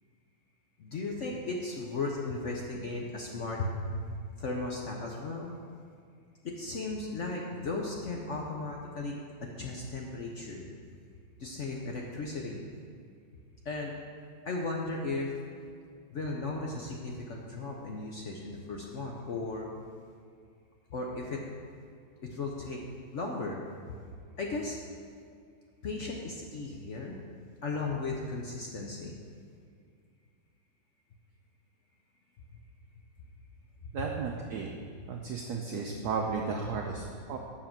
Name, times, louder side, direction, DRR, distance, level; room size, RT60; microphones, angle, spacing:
voice 1, 0.8-4.1 4.4-5.5 6.4-9.1 9.4-10.7 11.4-12.7 13.6-13.9 14.4-15.3 16.1-19.7 20.9-21.4 22.2-22.8 23.1-24.0 24.4-24.8 25.8-27.2 27.6-29.2 33.8-33.9 35.0-35.1, left 3 dB, 65° left, -1 dB, 0.7 m, -36 dB
voice 2, 33.9-34.7 35.1-37.4, right 5 dB, 65° right, 0 dB, 1.1 m, -34 dB
7.5 x 6.5 x 5.8 m, 2.2 s
omnidirectional pair, 2.2 m